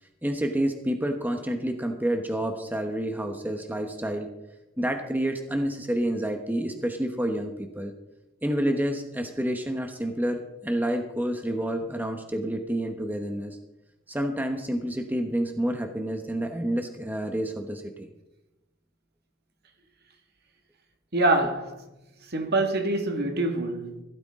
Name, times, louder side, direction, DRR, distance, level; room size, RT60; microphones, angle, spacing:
voice 1, 0.2-4.3 4.8-7.9 8.4-13.6 14.1-18.1, right 1 dB, 10° right, 1.0 m, -29 dB
voice 2, 21.1-21.8 22.3-24.0, right 2 dB, 50° right, 1.9 m, -25 dB
16.0 x 13.0 x 3.7 m
head